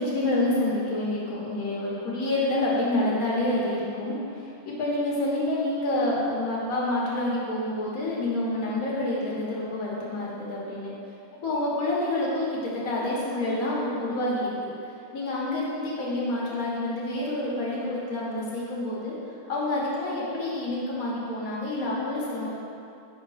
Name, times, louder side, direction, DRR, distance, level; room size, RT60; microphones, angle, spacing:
voice 1, 0.0-10.9 11.4-14.5 15.1-19.1 19.5-22.5, left 1 dB, 70° left, -6 dB, 1.7 m, -28 dB
5.5 x 3.6 x 5.6 m, 2.5 s
omnidirectional pair, 1.5 m